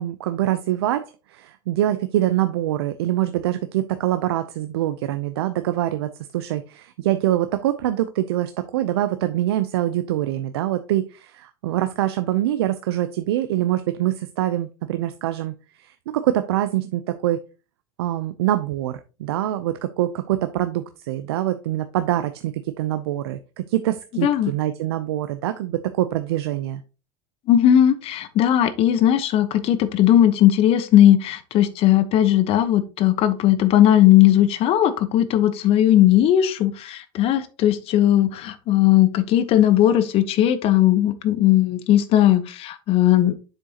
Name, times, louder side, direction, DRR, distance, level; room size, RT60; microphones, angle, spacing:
voice 1, 0.0-17.4 18.0-26.8, right 13 dB, 85° right, 10 dB, 0.6 m, -24 dB
voice 2, 27.5-43.3, left 12 dB, 50° left, 12 dB, 1.0 m, -17 dB
7.7 x 6.3 x 2.9 m, 0.32 s
supercardioid pair, 110°, 13 cm